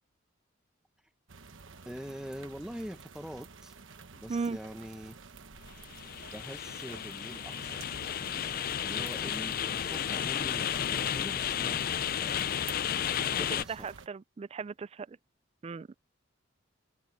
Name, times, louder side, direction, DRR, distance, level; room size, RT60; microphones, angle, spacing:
sound 1, 1.3-14.1, right 4 dB, 65° right, 1.2 m, -50 dB
voice 1, 1.8-3.8 4.1-5.3 6.3-8.2 8.8-12.5 13.3-13.9, equal, 5° right, 0.7 m, -44 dB
sound 2, 5.6-13.6, left 9 dB, 45° left, 0.4 m, -33 dB
voice 2, 13.3-15.2 15.6-15.9, right 5 dB, 30° right, 0.3 m, -37 dB
head